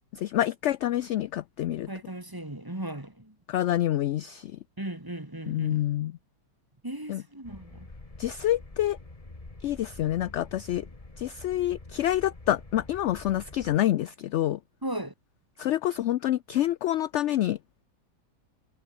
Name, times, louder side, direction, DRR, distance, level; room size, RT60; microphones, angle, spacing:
voice 1, 0.2-1.9 3.5-4.5 5.5-6.1 7.1-7.2 8.2-9.0 9.6-10.9 11.2-14.6 15.6-17.6, left 13 dB, 70° left, 0.6 m, -27 dB
voice 2, 1.9-3.3 4.8-5.9 6.8-7.9 14.8-15.1, right 1 dB, 15° right, 2.3 m, -37 dB
sound 1, 7.4-13.8, left 2 dB, 20° left, 2.2 m, -46 dB
omnidirectional pair, 1.7 m